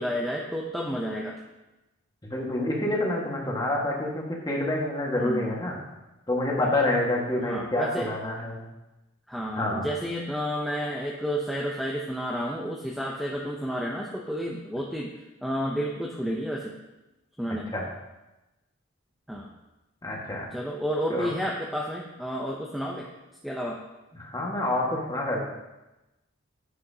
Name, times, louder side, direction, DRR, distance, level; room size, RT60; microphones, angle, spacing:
voice 1, 0.0-1.4 5.2-5.5 7.4-8.1 9.3-15.1 15.4-16.8 17.4-17.7 19.3-19.5 20.5-23.1 23.4-23.8, equal, ahead, -2 dB, 0.5 m, -31 dB
voice 2, 2.2-5.8 6.3-8.6 9.5-9.9 17.7-17.8 20.0-20.5 21.1-21.3 24.1-25.4, left 1 dB, 20° left, -2 dB, 1.5 m, -27 dB
9.8 x 8.2 x 2.8 m, 1.0 s
head